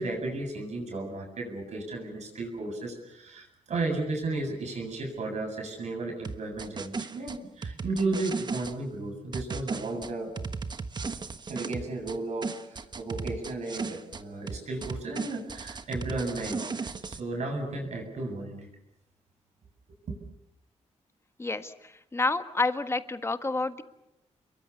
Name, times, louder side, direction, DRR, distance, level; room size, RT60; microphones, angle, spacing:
voice 1, 0.0-10.3 11.5-18.7 20.1-20.2, right 2 dB, 70° right, 4 dB, 7.7 m, -34 dB
sound 1, 6.2-8.7 9.3-12.2 12.4-14.2 14.5-17.2, right 4 dB, 35° right, 1.3 m, -36 dB
voice 2, 21.4-21.7 22.1-23.8, left 3 dB, 20° left, 9 dB, 1.6 m, -28 dB
29.5 x 22.5 x 7.0 m, 0.85 s
cardioid pair, 110°, 12 cm